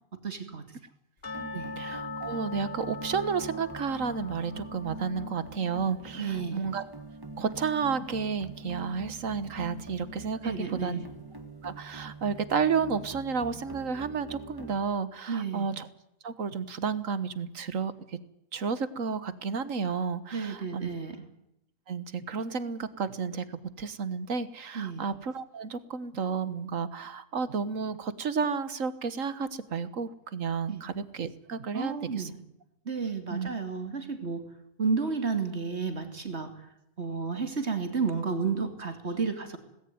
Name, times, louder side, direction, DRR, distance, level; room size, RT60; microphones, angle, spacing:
voice 1, 0.2-0.6 1.5-1.7 6.1-6.7 10.4-11.0 15.3-15.7 20.3-21.2 24.7-25.1 30.7-30.8 31.7-32.3 32.8-34.4 34.8-36.5 37.0-39.6, right 5 dB, 55° right, 7 dB, 3.2 m, -31 dB
sound 1, 1.2-8.1 8.4-8.5 9.0-9.1 9.6-9.7, left 4 dB, 45° left, 2.1 m, -43 dB
sound 2, 1.2-14.8, right 2 dB, 15° right, 1.8 m, -44 dB
voice 2, 1.4-6.9 7.4-11.0 11.6-15.9 16.2-18.2 18.5-20.9 21.9-32.3 33.3-33.5, right 5 dB, 75° right, 15 dB, 1.8 m, -32 dB
19.0 x 17.5 x 9.4 m, 0.81 s
omnidirectional pair, 1.4 m